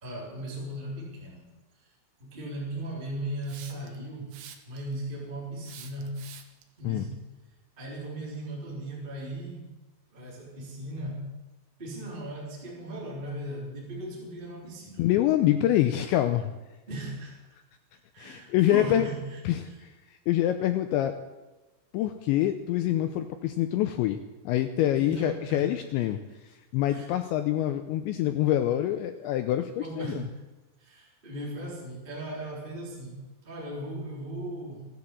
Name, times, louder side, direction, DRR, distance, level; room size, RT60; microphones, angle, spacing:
voice 1, 0.0-1.5 1.8-1.9 2.2-4.3 4.7-6.2 6.8-7.2 7.8-9.7 10.1-11.3 11.8-15.0 16.9-17.4 18.1-19.4 19.7-19.8 24.9-25.7 26.9-27.0 29.8-30.3 30.8-33.2 33.4-34.9, right 1 dB, 10° right, -4 dB, 3.2 m, -37 dB
Hiss, 3.4-4.0 4.3-4.9 5.6-6.6, right 10 dB, 80° right, 3.9 m, -47 dB
voice 2, 15.0-16.5 18.2-19.1 19.5-21.1 21.9-24.2 24.4-26.2 26.4-30.2, left 12 dB, 90° left, 8 dB, 2.6 m, -26 dB
16.5 x 11.5 x 7.4 m, 1.1 s
omnidirectional pair, 6.0 m